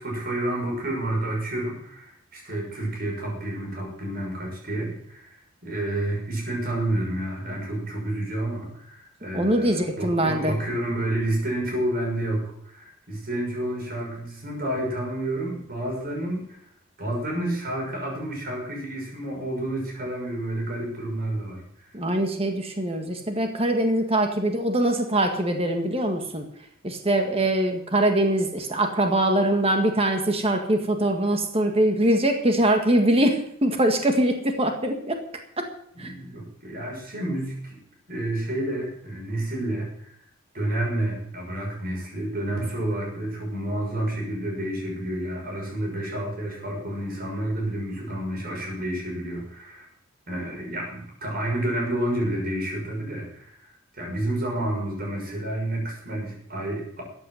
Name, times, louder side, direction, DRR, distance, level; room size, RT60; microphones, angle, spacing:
voice 1, 0.0-16.7 17.0-21.9 35.9-37.8 38.1-40.1 40.5-49.9 50.3-57.0, right 1 dB, 45° right, -1 dB, 6.3 m, -30 dB
voice 2, 9.3-10.6 21.9-26.5 26.8-35.2 35.6-35.7 36.0-36.1, right 1 dB, 30° right, 5 dB, 1.7 m, -23 dB
14.0 x 9.2 x 7.8 m, 0.69 s
head